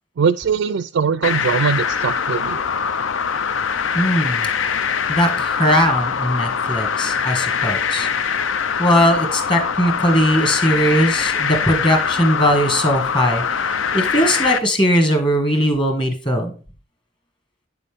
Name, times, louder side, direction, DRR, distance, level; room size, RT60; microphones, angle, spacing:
voice 1, 0.2-2.6, right 6 dB, 80° right, 14 dB, 0.4 m, -21 dB
sound 1, 1.2-14.6, left 6 dB, 90° left, 0.6 m, -23 dB
voice 2, 3.9-4.5 5.1-8.1 8.8-13.7 13.9-16.5, equal, 25° left, 4 dB, 1.7 m, -19 dB
9.4 x 6.9 x 3.5 m, 0.36 s
head